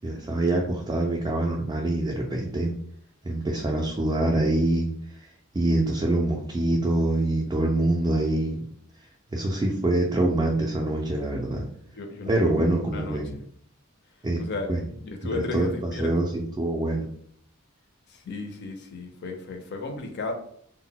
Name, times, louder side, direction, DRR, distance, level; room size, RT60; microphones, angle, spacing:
voice 1, 0.0-2.8 3.2-4.9 5.5-8.6 9.3-11.6 12.3-13.3 14.2-14.4 14.7-14.8 15.3-17.1, right 2 dB, 20° right, -2 dB, 0.3 m, -25 dB
voice 2, 11.9-13.4 14.4-14.7 15.0-16.3 18.1-20.3, left 3 dB, 50° left, 4 dB, 0.5 m, -34 dB
2.1 x 2.1 x 3.7 m, 0.66 s
head